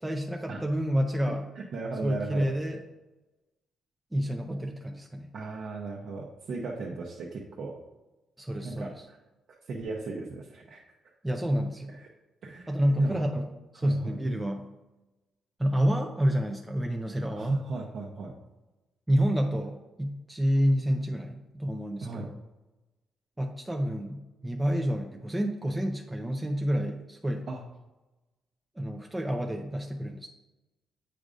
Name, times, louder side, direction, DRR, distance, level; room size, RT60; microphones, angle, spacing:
voice 1, 0.0-1.4 2.0-2.8 4.1-5.3 8.4-8.9 11.2-11.9 12.7-13.5 13.7-14.7 15.6-17.6 19.1-22.3 23.4-27.5 28.8-30.3, equal, 10° right, 3 dB, 0.4 m, -28 dB
voice 2, 1.6-2.5 5.3-7.7 8.6-9.2 9.7-10.8 11.9-12.1 12.4-13.3 13.7-14.2 17.3-18.4 22.0-22.3 27.5-27.6, right 3 dB, 65° right, -3 dB, 0.8 m, -35 dB
7.8 x 4.9 x 2.6 m, 1.1 s
cardioid pair, 115°, 0 cm